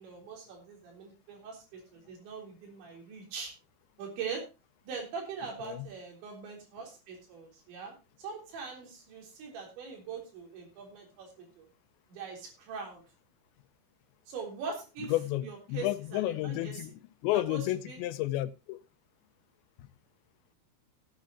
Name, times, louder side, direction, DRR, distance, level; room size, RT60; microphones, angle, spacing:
voice 1, 0.0-3.5 4.0-4.4 4.8-11.7 12.1-13.0 14.3-15.1 15.4-16.8 17.5-18.0, right 5 dB, 80° right, 6.0 m, -42 dB
voice 2, 15.1-16.9 17.2-18.8 19.8-19.9, left 15 dB, 85° left, 3.0 m, -31 dB
17.0 x 9.3 x 2.9 m
omnidirectional pair, 5.1 m